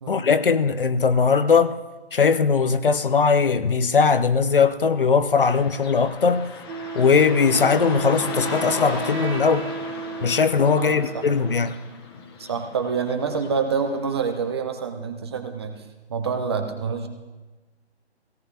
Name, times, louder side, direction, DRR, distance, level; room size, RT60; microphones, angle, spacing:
voice 1, 0.1-1.7 2.1-6.5 6.9-9.7 10.2-11.8, left 5 dB, 55° left, 12 dB, 0.7 m, -19 dB
Car passing by / Traffic noise roadway noise, 5.4-14.4, left 4 dB, 20° left, 1.4 m, -37 dB
Wind instrument woodwind instrument, 6.7-11.5, right 5 dB, 75° right, 1.1 m, -33 dB
voice 2, 10.8-11.2 12.4-17.1, right 5 dB, 25° right, 6 dB, 0.9 m, -27 dB
17.5 x 17.5 x 2.8 m, 1.2 s
figure-of-eight pair, 150°, 33 cm